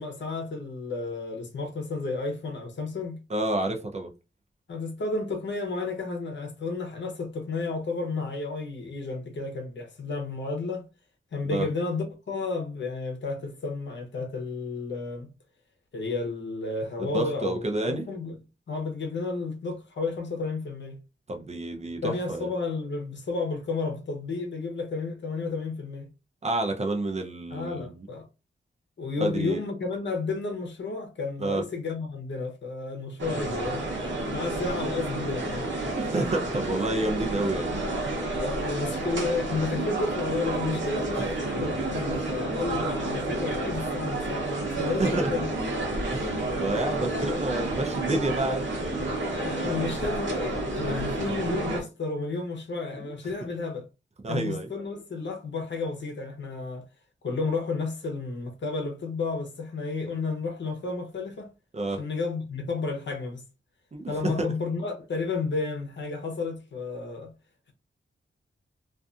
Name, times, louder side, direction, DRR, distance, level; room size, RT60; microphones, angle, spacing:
voice 1, 0.0-3.2 4.7-10.8 11.3-15.3 15.9-18.4 18.7-21.0 22.0-26.1 27.5-28.3 29.0-33.8 34.2-35.7 38.3-44.4 44.7-45.5 49.3-53.9 54.3-56.9 57.2-61.5 62.0-63.4 64.1-67.3, left 3 dB, 60° left, 0.8 m, -32 dB
voice 2, 3.3-4.1 11.4-11.7 17.0-18.0 21.3-22.5 26.4-28.1 29.2-29.6 31.4-31.6 35.8-37.7 41.2-41.3 41.6-41.7 42.8-42.9 44.7-45.3 46.1-48.7 53.0-53.1 54.2-54.7 61.7-62.0 63.9-64.3, right 2 dB, 30° right, 0.5 m, -29 dB
sound 1, 33.2-51.8, right 2 dB, 65° right, 0.9 m, -30 dB
2.6 x 2.5 x 2.3 m
wide cardioid pair, 115°, 21 cm